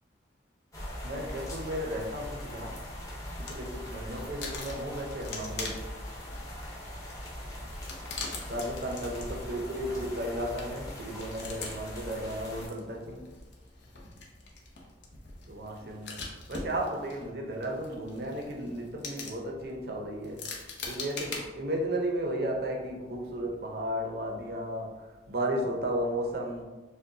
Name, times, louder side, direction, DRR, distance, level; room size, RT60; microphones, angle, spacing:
sound 1, 0.7-12.7, left 1 dB, 20° left, 0.7 m, -41 dB
voice 1, 1.0-2.9 3.4-5.9 8.5-13.3 15.5-20.5 20.9-26.6, right 1 dB, 55° right, 0.6 m, -34 dB
sound 2, 3.1-3.7 4.0-21.4, left 4 dB, 70° left, 0.7 m, -44 dB
sound 3, 3.1-18.5, left 1 dB, 10° right, 0.4 m, -56 dB
6.3 x 2.1 x 2.7 m
head